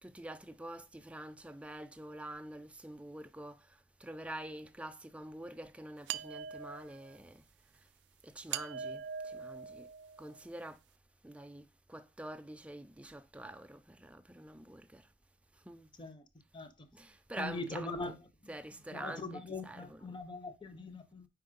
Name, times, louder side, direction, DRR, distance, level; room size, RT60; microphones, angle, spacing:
voice 1, 0.0-7.5 7.7-7.9 8.2-9.9 10.2-10.8 11.2-15.1 15.5-15.9 16.9-18.2 18.5-20.2, right 1 dB, 5° right, 0.4 m, -47 dB
sound 1, 6.1-7.2 8.5-10.4, right 7 dB, 75° right, 0.3 m, -42 dB
voice 2, 17.4-18.1 18.9-21.3, left 3 dB, 25° left, 0.7 m, -41 dB
4.7 x 4.3 x 5.1 m
head